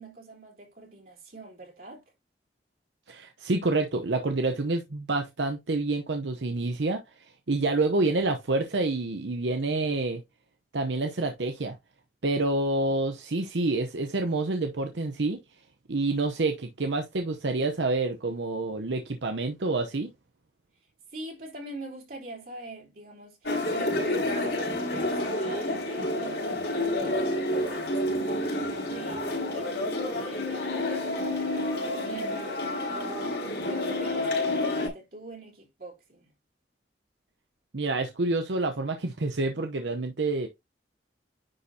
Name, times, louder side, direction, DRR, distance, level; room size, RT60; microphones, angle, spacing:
voice 1, 0.0-2.0 21.1-36.3, right 2 dB, 50° right, 3.7 m, -44 dB
voice 2, 3.1-7.0 7.5-10.2 10.7-11.8 12.2-15.4 15.9-20.1 37.7-40.5, right 2 dB, 85° right, 0.8 m, -28 dB
sound 1, 23.4-34.9, left 1 dB, 75° left, 4.1 m, -29 dB
9.9 x 4.3 x 2.8 m
head